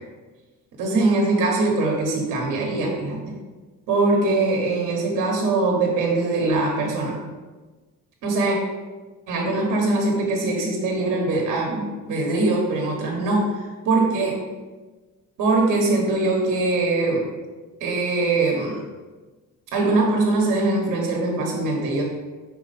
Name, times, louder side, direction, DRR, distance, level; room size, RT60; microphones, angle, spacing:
voice 1, 0.8-3.2 3.9-7.2 8.2-8.6 9.3-14.4 15.4-17.3 17.8-18.8 19.7-22.0, right 2 dB, 75° right, 0 dB, 1.3 m, -22 dB
5.3 x 4.4 x 4.1 m, 1.3 s
cardioid pair, 140°, 31 cm